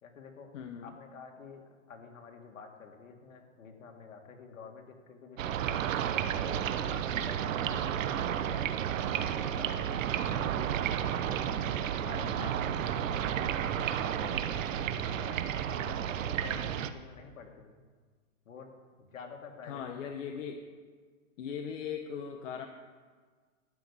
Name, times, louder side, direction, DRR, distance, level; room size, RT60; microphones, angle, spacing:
voice 1, 0.0-0.5 0.8-5.9 6.3-10.7 11.1-11.7 12.1-17.8 18.5-18.7 19.0-20.1, left 5 dB, 85° left, 4 dB, 2.1 m, -49 dB
voice 2, 0.5-0.9 12.1-12.5 19.7-20.6 21.4-22.7, left 7 dB, 70° left, 4 dB, 1.1 m, -39 dB
sound 1, 5.4-16.9, right 9 dB, 75° right, 0.9 m, -32 dB
12.0 x 6.3 x 8.3 m, 1.5 s
hypercardioid pair, 125°, 39 cm